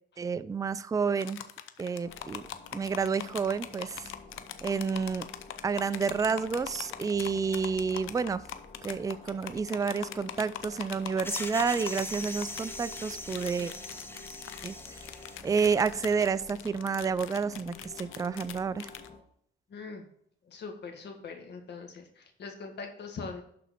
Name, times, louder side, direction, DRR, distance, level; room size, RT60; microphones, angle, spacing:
voice 1, 0.2-1.4 1.8-2.4 2.7-4.1 4.6-5.3 5.6-8.4 8.8-13.7 14.6-14.7 15.4-18.9, right 5 dB, 15° right, 14 dB, 0.4 m, -30 dB
sound 1, 1.2-19.1, left 11 dB, 90° left, 0.7 m, -42 dB
sound 2, 2.0-19.2, left 3 dB, 35° left, 1.9 m, -50 dB
sound 3, 11.2-16.0, left 2 dB, 10° left, 1.0 m, -41 dB
voice 2, 19.7-20.1 20.4-23.4, left 4 dB, 60° left, 4 dB, 1.7 m, -42 dB
11.5 x 4.2 x 4.2 m, 0.68 s
cardioid pair, 90°, 20 cm